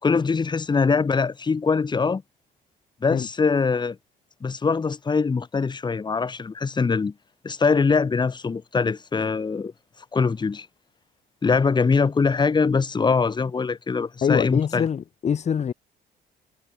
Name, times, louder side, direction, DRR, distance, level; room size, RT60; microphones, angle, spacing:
voice 1, 0.0-2.2 3.0-4.0 4.4-7.1 7.4-9.7 10.1-10.7 11.4-14.8, left 5 dB, 25° left, 3.9 m, -22 dB
voice 2, 14.2-15.7, left 7 dB, 40° left, 5.1 m, -24 dB
cardioid pair, 110°, 17 cm